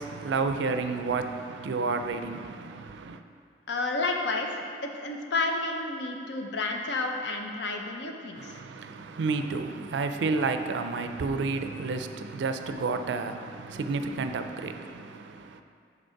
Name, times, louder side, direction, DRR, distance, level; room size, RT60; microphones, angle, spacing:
voice 1, 0.0-3.2 8.4-15.6, right 4 dB, 80° right, 0.4 m, -31 dB
voice 2, 3.7-8.6, left 3 dB, 70° left, 0.6 m, -31 dB
5.2 x 4.0 x 5.7 m
head